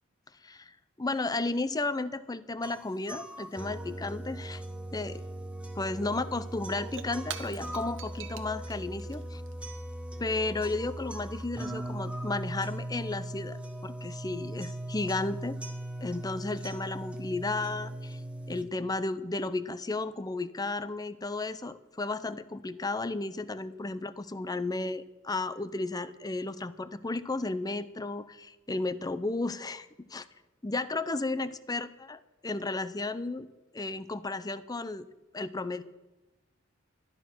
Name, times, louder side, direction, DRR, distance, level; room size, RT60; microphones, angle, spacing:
voice 1, 0.4-4.6 4.9-5.2 5.8-9.4 10.2-15.6 16.0-18.2 18.5-30.3 30.6-32.2 32.4-33.5 33.7-35.1 35.3-35.8, left 2 dB, 20° left, 15 dB, 0.6 m, -33 dB
sound 1, 2.6-18.6, right 1 dB, 5° right, 1.2 m, -39 dB
Shatter / Crushing, 6.8-11.1, right 8 dB, 65° right, 1.1 m, -47 dB
13.5 x 11.5 x 6.1 m, 1.1 s
head